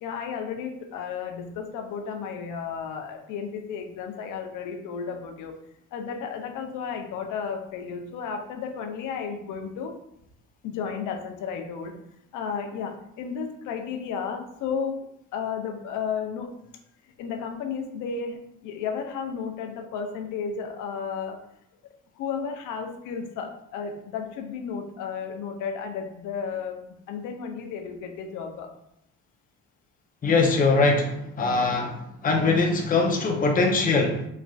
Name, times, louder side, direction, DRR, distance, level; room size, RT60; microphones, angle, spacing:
voice 1, 0.0-5.6 5.9-10.0 10.6-12.0 12.3-16.6 17.2-21.4 22.2-28.7, left 6 dB, 85° left, 4 dB, 0.5 m, -33 dB
voice 2, 30.2-34.3, left 3 dB, 30° left, 0 dB, 0.6 m, -22 dB
3.2 x 2.5 x 2.3 m, 0.78 s
cardioid pair, 90°, 30 cm